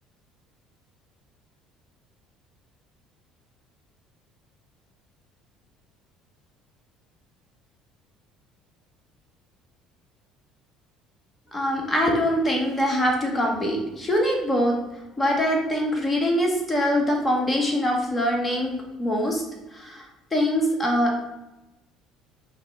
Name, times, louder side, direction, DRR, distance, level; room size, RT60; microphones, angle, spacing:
voice 1, 11.5-14.8 15.2-18.7 19.0-19.4 19.7-20.0 20.3-21.2, equal, 20° left, 0 dB, 1.1 m, -23 dB
5.6 x 2.0 x 3.3 m, 0.97 s
figure-of-eight pair, 60°, 0 cm